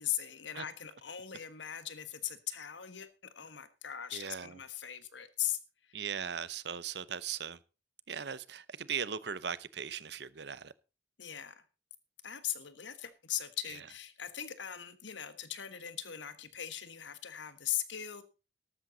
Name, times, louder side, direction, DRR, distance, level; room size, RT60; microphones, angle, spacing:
voice 1, 0.0-3.1 3.3-6.0 11.2-11.6 12.2-18.2, left 11 dB, 80° left, 1.5 m, -39 dB
voice 2, 4.1-4.5 5.9-7.6 8.1-10.7, right 7 dB, 65° right, 0.8 m, -38 dB
13.0 x 12.0 x 4.0 m
head